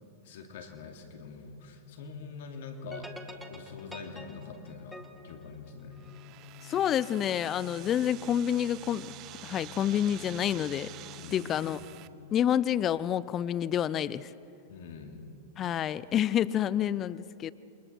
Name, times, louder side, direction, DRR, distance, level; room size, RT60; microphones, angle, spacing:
voice 1, 0.2-6.0 11.2-11.5 14.7-15.2, left 4 dB, 65° left, 4 dB, 2.7 m, -44 dB
sound 1, 2.9-6.3, left 1 dB, ahead, 2.1 m, -47 dB
sound 2, 3.2-12.6, left 10 dB, 85° left, 1.0 m, -51 dB
sound 3, 6.0-12.1, right 14 dB, 40° right, 0.8 m, -48 dB
voice 2, 6.6-9.1 9.4-10.9 11.3-11.8 12.3-14.3 15.6-17.5, left 10 dB, 30° left, 18 dB, 0.6 m, -28 dB
28.0 x 24.0 x 4.6 m, 2.7 s
hypercardioid pair, 110°, 0 cm